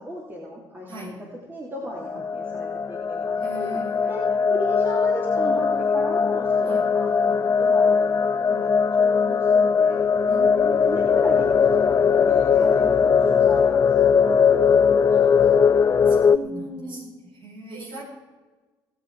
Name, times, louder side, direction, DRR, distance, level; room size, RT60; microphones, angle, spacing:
voice 1, 0.0-3.8 4.1-4.2 4.5-10.0 10.8-15.7 16.3-17.1, equal, 20° right, -3 dB, 3.1 m, -37 dB
voice 2, 0.9-1.2 3.4-4.4 6.6-6.9 10.3-11.3 12.5-13.3 16.1-17.0 17.3-18.0, right 1 dB, 45° right, -2 dB, 5.3 m, -40 dB
sound 1, 1.9-16.4, left 6 dB, 30° left, 0.4 m, -20 dB
18.5 x 8.3 x 4.9 m, 1.3 s
figure-of-eight pair, 50°, 11 cm